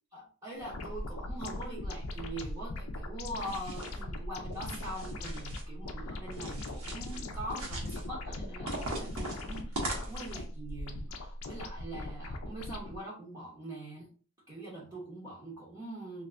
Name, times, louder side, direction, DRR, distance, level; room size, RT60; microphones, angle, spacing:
voice 1, 0.1-14.1 14.5-16.3, right 1 dB, 15° right, -7 dB, 0.7 m, -43 dB
sound 1, 0.6-13.0, left 1 dB, 80° left, 0.5 m, -40 dB
sound 2, 3.4-4.0 4.5-5.7 6.3-7.2 7.5-8.1 8.7-10.4, right 1 dB, 90° right, 1.0 m, -40 dB
2.5 x 2.5 x 3.2 m, 0.41 s
head